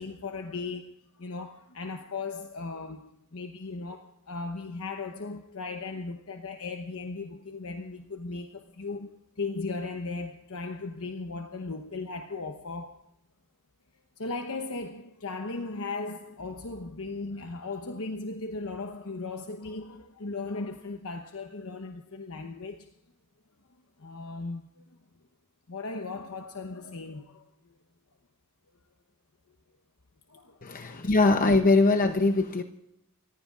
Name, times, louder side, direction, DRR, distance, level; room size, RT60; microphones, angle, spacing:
voice 1, 0.0-13.1 14.2-22.9 24.0-24.8 25.7-27.8 30.3-31.0, left 3 dB, 75° left, 1.0 m, -37 dB
voice 2, 30.6-32.6, left 3 dB, 40° left, 0.7 m, -22 dB
29.0 x 15.5 x 2.5 m
head